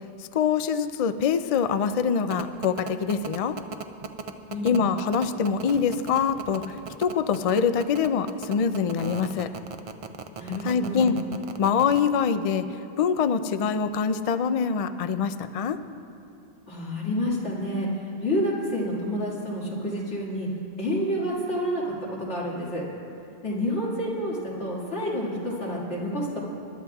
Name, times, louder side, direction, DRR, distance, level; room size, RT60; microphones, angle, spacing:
voice 1, 0.2-3.6 4.6-9.5 10.6-11.2 11.6-12.6 13.0-15.8, left 6 dB, 60° left, 10 dB, 0.3 m, -24 dB
sound 1, 2.3-12.0, right 5 dB, 45° right, 0.4 m, -36 dB
voice 2, 10.3-11.1 16.7-20.5 20.8-21.9 22.2-22.8 23.4-26.4, equal, 90° left, -5 dB, 2.5 m, -29 dB
26.0 x 11.5 x 2.3 m, 2.7 s
omnidirectional pair, 1.2 m